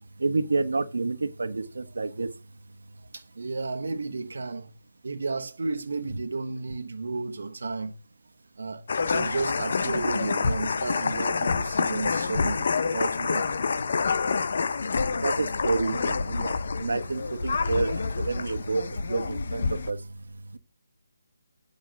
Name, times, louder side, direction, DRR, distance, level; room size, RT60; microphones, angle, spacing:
voice 1, 0.2-2.3 15.2-16.5 16.8-18.8 19.1-20.0 20.5-20.6, right 3 dB, 85° right, 1.3 m, -28 dB
voice 2, 3.1-4.7 5.0-7.9 8.6-13.6, right 3 dB, 65° right, 1.2 m, -33 dB
sound 1, 8.9-19.9, left 4 dB, 40° left, 0.7 m, -27 dB
8.8 x 5.4 x 6.2 m
hypercardioid pair, 180°, 0 cm